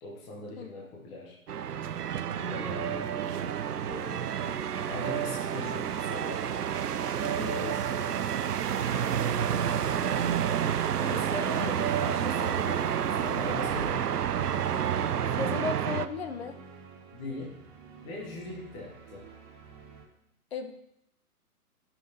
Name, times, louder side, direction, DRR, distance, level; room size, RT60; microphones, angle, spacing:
voice 1, 0.0-1.4 2.5-3.2 4.1-4.2 4.9-6.5 7.1-8.3 11.0-14.2 17.1-17.6 18.0-19.3, left 2 dB, 10° left, -2 dB, 0.6 m, -40 dB
sound 1, 1.5-16.1, right 9 dB, 80° right, 0.6 m, -29 dB
voice 2, 3.9-4.3 15.4-16.6 20.5-20.7, left 5 dB, 40° left, 8 dB, 0.8 m, -35 dB
sound 2, 8.0-20.0, right 6 dB, 30° right, 1.9 m, -50 dB
13.5 x 5.9 x 2.7 m, 0.80 s
figure-of-eight pair, 135°, 46 cm